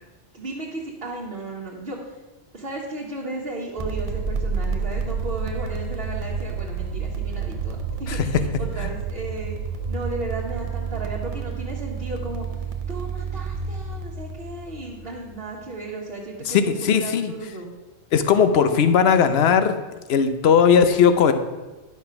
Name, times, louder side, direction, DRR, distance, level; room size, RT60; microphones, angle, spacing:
voice 1, 0.3-2.0 2.5-9.6 9.9-12.4 12.9-17.7, right 2 dB, 55° right, -5 dB, 1.6 m, -34 dB
sound 1, 3.8-15.5, right 5 dB, 35° right, 0.7 m, -29 dB
voice 2, 16.5-17.3 18.1-19.7 20.1-21.3, left 7 dB, 65° left, 10 dB, 1.0 m, -18 dB
10.5 x 6.0 x 5.8 m, 1.2 s
omnidirectional pair, 1.2 m